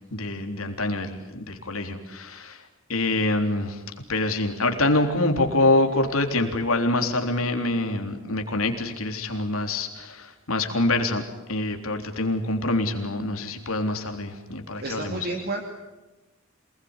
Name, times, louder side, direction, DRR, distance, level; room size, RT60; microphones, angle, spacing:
voice 1, 0.1-2.6 2.9-3.8 4.1-11.2 11.5-15.3, left 2 dB, 80° left, 5 dB, 3.6 m, -25 dB
voice 2, 14.8-15.6, right 2 dB, 50° right, 3 dB, 2.6 m, -30 dB
27.5 x 20.5 x 9.8 m, 1.1 s
head